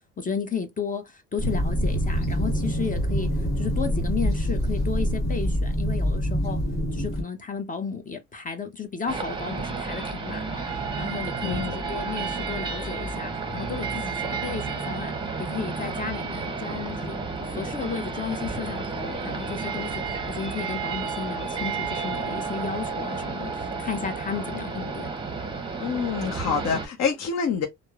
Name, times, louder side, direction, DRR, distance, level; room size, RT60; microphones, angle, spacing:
voice 1, 0.2-6.6 6.9-10.6 11.0-15.1 15.4-25.1, left 6 dB, 25° left, 0.6 m, -33 dB
sound 1, 1.4-7.2, equal, 45° left, 1.5 m, -25 dB
sound 2, 9.1-26.9, right 4 dB, 15° right, 0.7 m, -31 dB
voice 2, 11.4-11.9 25.8-27.7, left 6 dB, 60° left, 0.7 m, -27 dB
2.9 x 2.0 x 2.3 m
cardioid pair, 90°, 30 cm